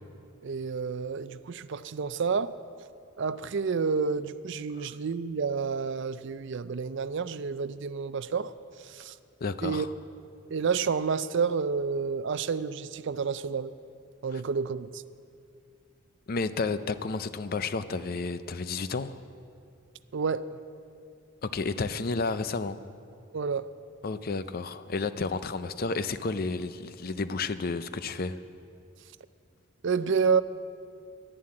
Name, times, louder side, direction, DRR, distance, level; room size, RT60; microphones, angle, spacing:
voice 1, 0.4-2.5 3.2-8.5 8.8-9.1 9.6-9.9 10.5-13.7 14.2-15.0 20.1-20.5 23.3-23.7 29.8-30.4, right 5 dB, 60° right, 14 dB, 0.4 m, -29 dB
voice 2, 9.4-9.9 14.3-14.4 16.3-19.2 21.4-22.8 24.0-28.4, left 4 dB, 45° left, 12 dB, 0.5 m, -31 dB
11.0 x 11.0 x 8.7 m, 2.4 s
head